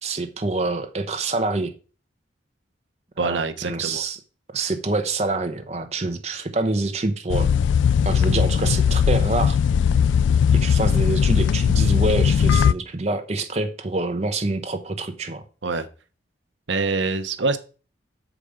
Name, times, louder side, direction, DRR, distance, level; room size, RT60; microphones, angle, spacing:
voice 1, 0.0-1.7 3.2-4.2 4.5-7.5 8.0-9.6 10.5-15.4, right 2 dB, 35° right, 0.8 m, -26 dB
voice 2, 3.2-4.0 15.6-15.9 16.7-17.6, right 3 dB, 75° right, 0.8 m, -25 dB
sound 1, 7.3-12.7, left 7 dB, 80° left, 0.3 m, -19 dB
6.7 x 5.0 x 5.0 m
head